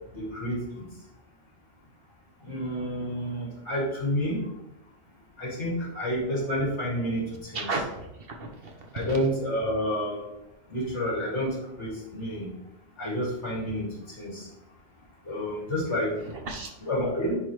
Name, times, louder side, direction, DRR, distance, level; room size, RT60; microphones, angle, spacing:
voice 1, 0.1-0.8 2.4-4.4 5.4-7.7 8.9-10.2 10.7-12.5 13.0-14.5 15.3-16.1 16.9-17.4, equal, 70° left, -4 dB, 2.5 m, -29 dB
voice 2, 7.5-9.2 16.2-16.7, right 3 dB, 55° right, 3 dB, 1.1 m, -34 dB
10.5 x 3.8 x 3.1 m, 0.93 s
omnidirectional pair, 1.2 m